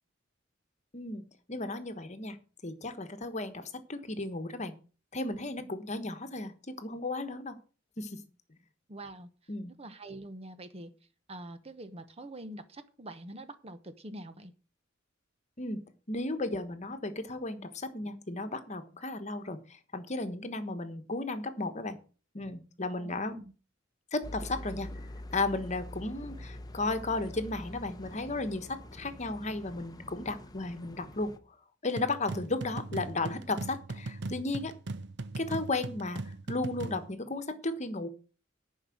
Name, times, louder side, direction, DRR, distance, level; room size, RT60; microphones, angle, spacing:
voice 1, 0.9-2.4 2.6-4.7 5.1-6.5 6.8-7.5 8.0-8.2 9.5-9.7 15.6-15.8 16.1-19.6 19.9-22.0 22.3-23.4 24.1-24.9 25.3-31.3 31.8-34.7 35.4-36.2 36.5-38.1, left 2 dB, 35° left, 10 dB, 1.3 m, -34 dB
voice 2, 8.9-9.3 9.7-10.9 11.3-14.5 22.9-23.5, right 1 dB, 30° right, 11 dB, 1.0 m, -45 dB
sound 1, 24.2-31.4, left 1 dB, 20° left, 0.9 m, -45 dB
sound 2, 32.0-37.1, right 2 dB, 65° right, 0.7 m, -39 dB
10.5 x 5.6 x 7.7 m, 0.36 s
head